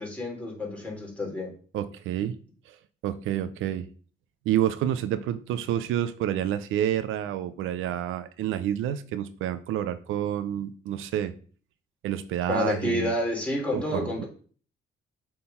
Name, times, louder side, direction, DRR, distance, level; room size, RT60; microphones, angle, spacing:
voice 1, 0.0-1.5 12.5-14.3, left 1 dB, 5° left, -2 dB, 3.2 m, -29 dB
voice 2, 1.7-2.4 2.7-2.8 3.0-3.9 4.5-11.3 12.0-13.1 13.7-14.2, right 11 dB, 85° right, 12 dB, 0.5 m, -29 dB
6.6 x 3.8 x 5.5 m, 0.43 s
cardioid pair, 90°, 20 cm